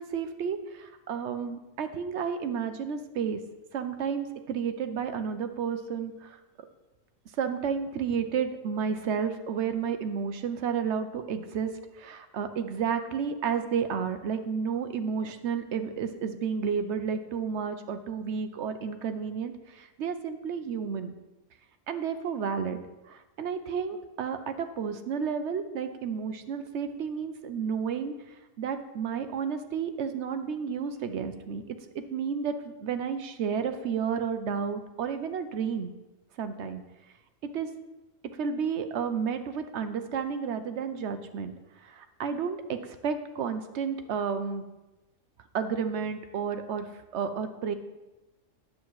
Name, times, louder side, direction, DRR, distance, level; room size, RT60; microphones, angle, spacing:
voice 1, 0.0-3.4 3.7-6.4 7.4-21.2 21.9-28.1 28.6-35.9 36.4-36.8 37.4-37.7 38.4-41.5 41.8-44.6 45.5-46.9 47.1-47.7, right 6 dB, 65° right, 9 dB, 0.9 m, -31 dB
9.5 x 7.5 x 3.1 m, 1.0 s
omnidirectional pair, 1.3 m